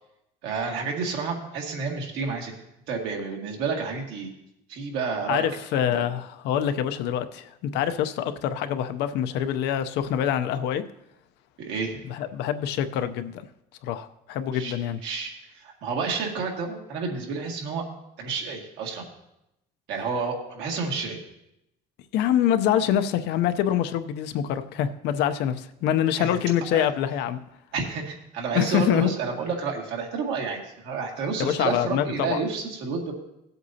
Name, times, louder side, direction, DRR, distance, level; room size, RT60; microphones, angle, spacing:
voice 1, 0.4-2.5 2.9-4.3 4.7-5.5 5.7-6.0 11.6-12.0 14.5-14.7 15.0-17.8 18.2-19.1 19.9-21.2 26.2-26.4 26.7-26.9 27.7-33.1, right 4 dB, 75° right, 0 dB, 2.1 m, -30 dB
voice 2, 5.3-10.8 12.0-13.4 13.8-15.0 22.1-27.4 28.5-29.1 31.4-32.4, left 10 dB, 70° left, 10 dB, 0.7 m, -25 dB
17.0 x 8.0 x 2.8 m, 0.84 s
cardioid pair, 140°, 18 cm